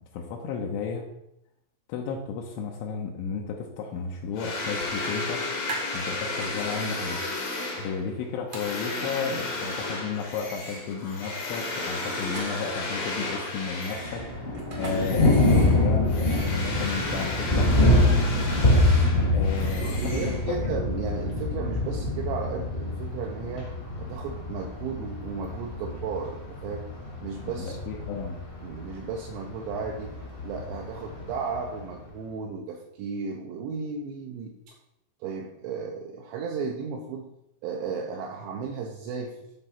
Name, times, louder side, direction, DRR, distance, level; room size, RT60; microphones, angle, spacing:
voice 1, 0.1-1.0 1.9-5.4 5.9-7.2 7.8-14.2 14.8-18.0 19.3-20.6 27.6-28.4, left 5 dB, 80° left, 1 dB, 3.1 m, -33 dB
sound 1, 4.4-14.4 14.8-20.8, left 2 dB, 60° left, 1.8 m, -34 dB
sound 2, 4.5-4.7 5.0-6.8 8.5-8.7 12.2-12.8 14.5-14.9 16.3-17.2, right 3 dB, 60° right, 1.5 m, -39 dB
Thunder, 14.0-31.9, left 1 dB, 35° left, 1.0 m, -25 dB
voice 2, 19.8-23.7 24.0-26.8 27.2-28.1 28.6-30.1 30.4-34.8 35.2-37.3 37.6-39.4, right 5 dB, 75° right, 0 dB, 2.8 m, -34 dB
11.5 x 4.0 x 5.8 m, 0.82 s
omnidirectional pair, 5.9 m